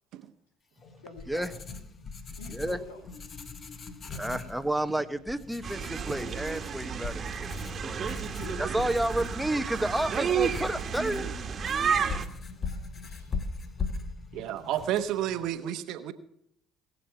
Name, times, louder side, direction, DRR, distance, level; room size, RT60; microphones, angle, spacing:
Writing, 0.8-15.6, left 4 dB, 40° left, 1.4 m, -40 dB
voice 1, 1.0-1.8 2.4-3.0 4.4-4.5 8.4-8.7 9.8-10.0 12.2-14.2 14.6-14.7, left 3 dB, 85° left, 5 dB, 2.5 m, -49 dB
voice 2, 2.5-2.8 4.1-8.1 8.6-11.3, right 1 dB, 5° right, 11 dB, 1.1 m, -31 dB
sound 1, 5.6-12.2, right 7 dB, 45° right, 1.6 m, -31 dB
voice 3, 14.3-16.1, right 11 dB, 65° right, 11 dB, 1.0 m, -31 dB
20.0 x 7.3 x 5.8 m, 0.75 s
hypercardioid pair, 55°, 0 cm